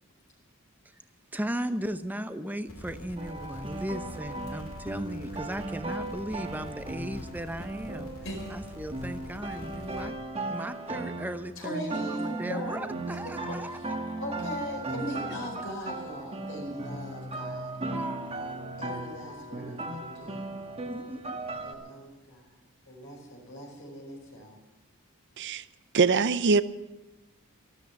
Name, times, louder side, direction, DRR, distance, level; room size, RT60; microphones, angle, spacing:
voice 1, 1.3-8.1 8.5-10.2 10.5-14.0 16.7-16.8 17.9-18.7 19.3-19.9 20.9-21.4, right 1 dB, 10° right, 0.7 m, -37 dB
sound 1, 2.7-10.1, left 1 dB, 80° left, 2.1 m, -45 dB
sound 2, 3.2-21.7, right 2 dB, 30° right, 1.4 m, -37 dB
voice 2, 8.2-8.5 11.6-13.0 13.2-13.3 13.7-13.9 14.2-17.7 18.8-20.5 21.6-22.5 22.9-24.6, equal, 65° left, 4.8 m, -39 dB
voice 3, 25.9-26.6, right 4 dB, 55° right, 0.6 m, -22 dB
13.5 x 13.0 x 7.0 m
head